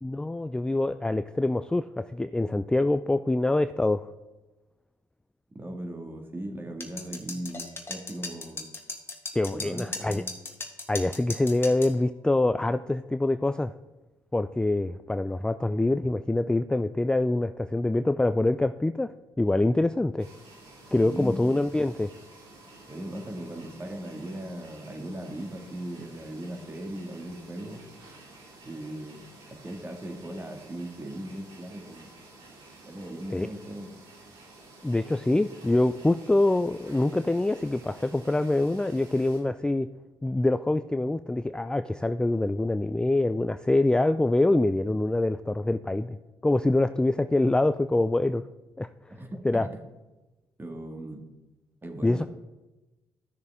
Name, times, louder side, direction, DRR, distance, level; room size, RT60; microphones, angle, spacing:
voice 1, 0.0-4.1 9.3-10.2 10.9-13.7 14.3-20.3 20.9-22.1 33.3-33.5 34.8-39.9 40.2-46.2 46.4-48.4 48.8-48.9 49.4-49.7 52.0-52.2, left 2 dB, 10° left, 11 dB, 0.3 m, -25 dB
voice 2, 5.5-8.7 9.5-10.4 21.0-21.4 22.9-27.8 28.6-32.1 32.9-33.9 49.1-49.8 50.6-51.3 51.8-52.3, right 1 dB, 25° right, 4 dB, 1.9 m, -38 dB
sound 1, 6.8-11.9, left 3 dB, 25° left, 1.7 m, -37 dB
sound 2, 20.2-39.4, right 2 dB, 85° right, 2.6 m, -51 dB
13.5 x 6.5 x 3.6 m, 1.1 s
supercardioid pair, 65°, 9 cm